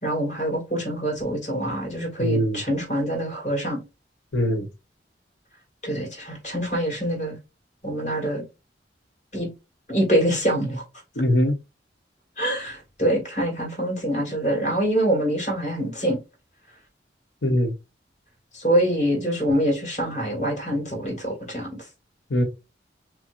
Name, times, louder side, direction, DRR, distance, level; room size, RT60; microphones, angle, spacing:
voice 1, 0.0-3.8 5.8-7.4 7.8-8.4 9.3-9.5 9.9-10.8 12.4-16.2 18.5-21.7, right 1 dB, 45° left, 2.2 m, -25 dB
voice 2, 2.2-2.6 4.3-4.7 11.2-11.6 17.4-17.7 22.3-22.4, equal, 85° left, 1.0 m, -21 dB
5.9 x 2.0 x 2.6 m
head